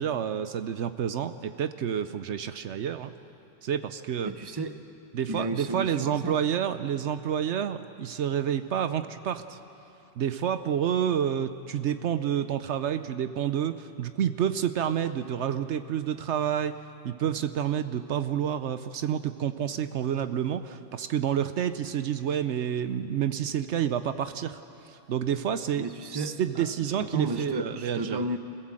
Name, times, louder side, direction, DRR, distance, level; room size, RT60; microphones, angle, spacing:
voice 1, 0.0-3.1 3.6-4.3 5.1-9.6 10.2-16.8 17.0-24.6 24.9-28.2, right 9 dB, 70° right, 11 dB, 1.0 m, -29 dB
voice 2, 4.2-4.8 5.3-6.4 25.8-28.4, right 2 dB, 25° right, 8 dB, 0.8 m, -33 dB
26.0 x 16.5 x 7.6 m, 2.8 s
omnidirectional pair, 1.2 m